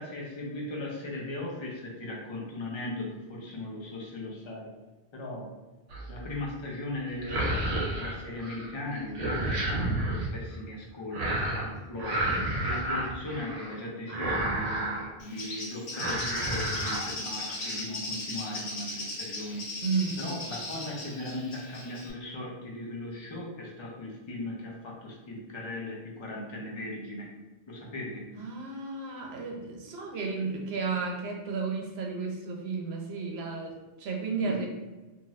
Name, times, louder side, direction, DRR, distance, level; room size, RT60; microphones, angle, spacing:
voice 1, 0.0-4.7 5.1-5.5 6.1-19.7 20.2-27.3 27.7-28.3 34.4-34.7, left 1 dB, 35° left, -3 dB, 0.6 m, -38 dB
sound 1, 5.9-6.3 7.1-8.7 9.0-10.3 11.1-11.7 12.0-13.8 14.1-15.1 15.4-15.6 15.9-17.0 17.4-17.8, right 1 dB, 50° right, 0.5 m, -31 dB
Bird, 15.2-22.1, left 2 dB, 80° left, 1.0 m, -37 dB
voice 2, 19.8-20.2 28.3-34.7, right 4 dB, 75° right, 1 dB, 0.9 m, -33 dB
2.5 x 2.5 x 3.1 m, 1.2 s
omnidirectional pair, 1.1 m